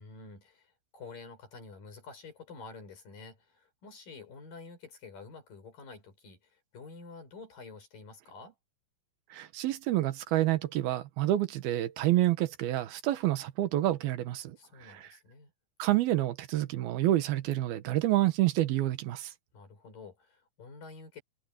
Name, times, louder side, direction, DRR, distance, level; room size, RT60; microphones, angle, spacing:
voice 1, 0.0-8.5 14.6-15.5 19.5-21.2, left 4 dB, 65° left, 7.9 m, -49 dB
voice 2, 9.3-14.6 15.8-19.3, right 15 dB, 90° right, 3.2 m, -28 dB
omnidirectional pair, 4.2 m